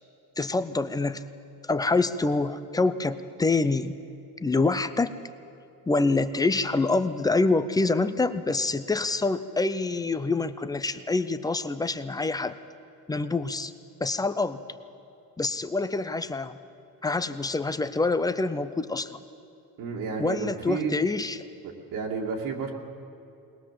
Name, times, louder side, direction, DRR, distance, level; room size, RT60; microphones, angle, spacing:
voice 1, 0.4-1.2 1.6-4.0 4.4-5.1 5.9-12.5 13.1-13.7 14.0-14.6 15.4-16.6 17.0-19.2 20.2-21.5, left 3 dB, 10° left, 12 dB, 0.5 m, -26 dB
voice 2, 19.8-20.9 21.6-22.7, right 5 dB, 75° right, -2 dB, 2.5 m, -31 dB
20.5 x 20.0 x 7.5 m, 2.7 s
cardioid pair, 170°, 35 cm